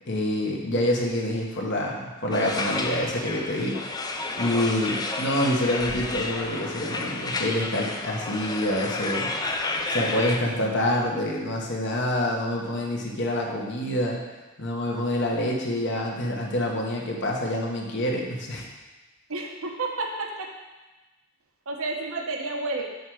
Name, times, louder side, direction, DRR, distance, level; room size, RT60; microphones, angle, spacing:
voice 1, 0.1-3.8 4.4-9.3 9.9-14.2 14.6-18.6, left 1 dB, 55° left, -1 dB, 1.2 m, -27 dB
sound 1, 2.3-10.4, left 3 dB, 20° left, 0.5 m, -31 dB
voice 2, 19.3-20.5 21.7-22.8, right 3 dB, 75° right, 1 dB, 1.0 m, -30 dB
5.4 x 4.6 x 6.3 m, 1.1 s
head